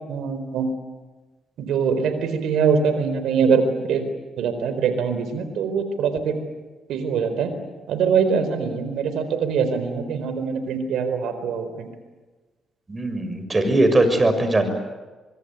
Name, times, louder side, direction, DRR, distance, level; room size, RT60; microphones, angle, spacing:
voice 1, 0.1-0.7 1.6-4.1 4.4-6.4 6.9-7.5 7.9-11.9, right 6 dB, 75° right, 9 dB, 4.3 m, -23 dB
voice 2, 12.9-14.7, right 2 dB, 30° right, 8 dB, 6.7 m, -20 dB
24.5 x 24.0 x 9.5 m, 1.2 s
supercardioid pair, 50°, 0 cm